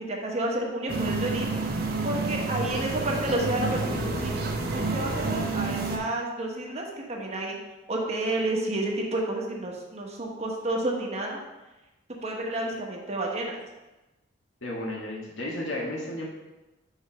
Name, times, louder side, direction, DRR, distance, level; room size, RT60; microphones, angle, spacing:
voice 1, 0.1-1.5 2.0-4.4 4.7-7.6 7.9-11.4 12.2-13.6, right 1 dB, 35° right, 0 dB, 1.1 m, -30 dB
sound 1, 0.9-6.0, right 3 dB, 50° right, 0.8 m, -29 dB
voice 2, 14.6-16.3, left 1 dB, 80° left, -3 dB, 1.7 m, -33 dB
4.9 x 4.7 x 5.6 m, 1.0 s
head